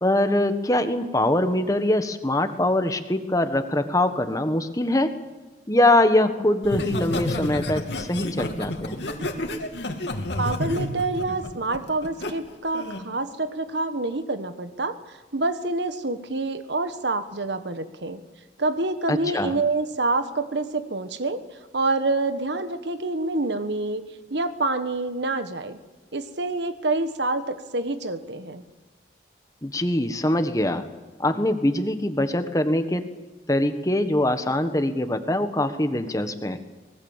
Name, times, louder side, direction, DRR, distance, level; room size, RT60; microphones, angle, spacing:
voice 1, 0.0-5.1 5.7-9.0 19.1-19.5 29.6-30.8 31.2-33.0 33.5-36.6, left 1 dB, 20° left, 8 dB, 1.4 m, -23 dB
Laughter, 6.6-12.3 12.7-13.1, left 1 dB, 70° left, 2.8 m, -30 dB
voice 2, 10.4-18.2 18.6-21.4 21.7-24.0 24.3-25.8 26.1-28.6, right 2 dB, 70° right, 10 dB, 1.5 m, -27 dB
24.0 x 20.0 x 7.4 m, 1.2 s
head